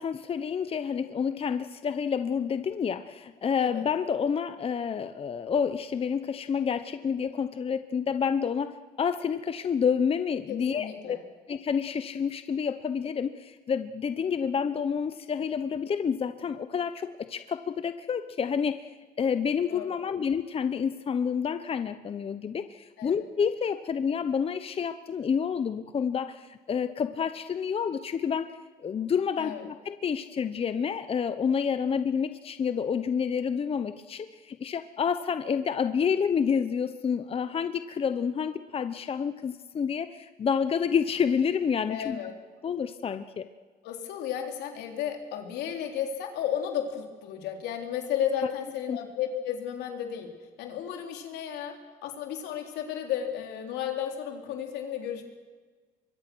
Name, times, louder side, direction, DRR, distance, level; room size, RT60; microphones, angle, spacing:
voice 1, 0.0-11.2 11.5-18.8 19.2-28.5 28.8-42.2 42.6-43.5 48.9-49.0, left 7 dB, 35° left, 11 dB, 0.9 m, -29 dB
voice 2, 10.5-11.2 19.7-20.0 23.0-23.3 29.4-29.6 41.9-42.3 43.8-50.3 50.6-51.8 52.0-55.2, left 9 dB, 85° left, 3 dB, 3.8 m, -33 dB
25.0 x 23.0 x 6.3 m, 1.4 s
cardioid pair, 110°, 17 cm